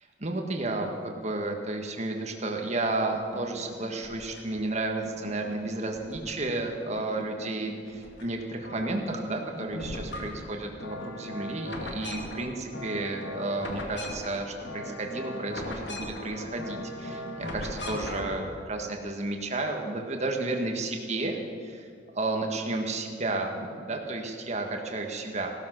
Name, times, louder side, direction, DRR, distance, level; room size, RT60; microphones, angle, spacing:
voice 1, 0.2-21.9 22.1-25.5, right 2 dB, 40° right, 3 dB, 1.5 m, -32 dB
sound 1, 3.1-4.6 5.0-6.6 7.0-8.3 8.5-18.5, left 1 dB, 85° left, 2.2 m, -39 dB
17.0 x 13.0 x 6.1 m, 2.2 s
head